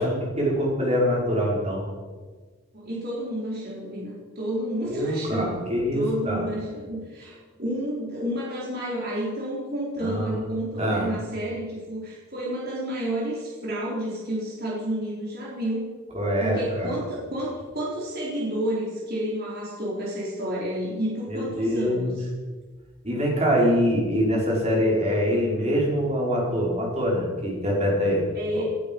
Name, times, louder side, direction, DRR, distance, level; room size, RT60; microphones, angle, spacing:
voice 1, 0.0-1.8 4.8-6.5 10.0-10.4 10.8-11.1 16.1-16.9 21.3-22.2 23.0-28.2 28.5-28.7, equal, 30° right, -3 dB, 5.2 m, -24 dB
voice 2, 2.7-15.9 16.4-22.3 28.3-28.8, equal, 45° right, -5 dB, 4.2 m, -30 dB
19.5 x 12.0 x 5.5 m, 1.4 s
head